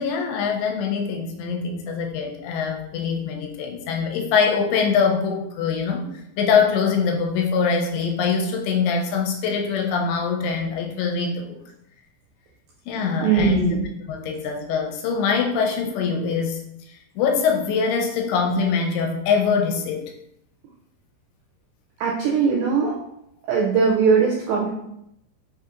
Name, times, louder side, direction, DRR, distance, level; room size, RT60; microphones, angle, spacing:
voice 1, 0.0-11.6 12.9-13.7 14.1-16.6 16.9-20.0, left 5 dB, 85° left, 1 dB, 2.6 m, -23 dB
voice 2, 13.2-13.9 22.0-23.0 23.5-24.7, right 5 dB, 85° right, -2 dB, 2.0 m, -20 dB
6.1 x 2.8 x 2.4 m, 0.79 s
omnidirectional pair, 4.7 m